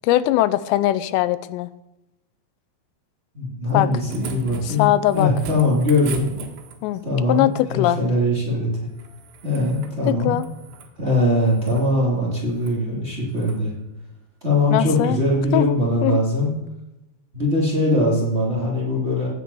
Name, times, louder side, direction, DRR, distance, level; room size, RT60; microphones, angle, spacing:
voice 1, 0.0-1.7 3.7-3.9 4.6-5.3 6.8-7.0 7.3-8.0 10.1-10.5 14.7-15.2 15.5-16.2, left 14 dB, 85° left, 15 dB, 2.8 m, -21 dB
voice 2, 3.3-4.9 5.1-6.3 7.0-8.7 9.4-10.3 11.0-13.7 14.4-16.5 17.3-19.3, left 1 dB, 20° right, -3 dB, 2.3 m, -21 dB
sound 1, 3.7-7.0 8.9-10.0 10.3-10.9 11.5-11.9 12.5-12.8 13.3-13.6 15.0-15.1, right 6 dB, 85° right, 3.8 m, -38 dB
16.5 x 7.6 x 7.0 m, 0.95 s
omnidirectional pair, 4.9 m